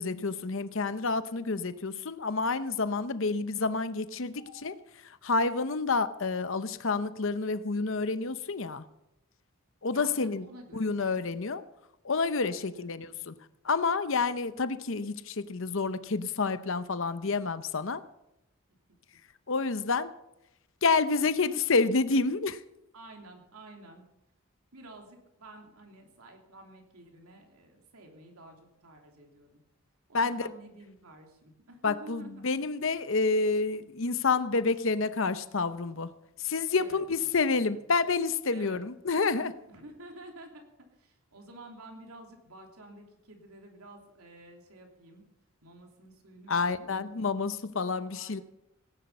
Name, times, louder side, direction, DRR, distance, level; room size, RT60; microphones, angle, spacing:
voice 1, 0.0-4.7 5.1-8.8 9.8-10.5 10.7-11.6 12.0-13.3 13.6-18.0 19.5-20.1 20.8-22.6 30.1-30.5 31.8-39.6 46.5-48.4, left 4 dB, 60° left, 13 dB, 0.8 m, -29 dB
voice 2, 9.9-11.1 12.4-13.0 22.9-24.1 24.7-29.6 30.1-32.6 36.7-37.8 38.5-38.8 39.7-40.6 40.9-45.2 45.6-46.9 48.1-48.4, right 1 dB, 80° right, 2 dB, 3.1 m, -51 dB
18.0 x 10.5 x 5.5 m, 0.88 s
head